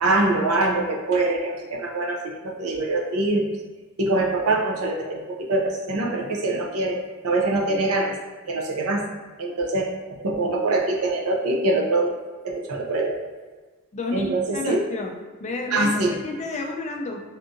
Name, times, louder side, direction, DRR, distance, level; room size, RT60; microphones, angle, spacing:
voice 1, 0.0-3.5 4.0-7.0 7.2-8.1 8.5-9.0 9.4-12.1 12.4-13.2 14.1-14.8 15.7-16.1, right 2 dB, 70° right, 0 dB, 0.6 m, -24 dB
voice 2, 13.9-15.1 15.4-17.2, left 3 dB, 30° left, 1 dB, 0.4 m, -31 dB
3.6 x 2.6 x 2.5 m, 1.4 s
head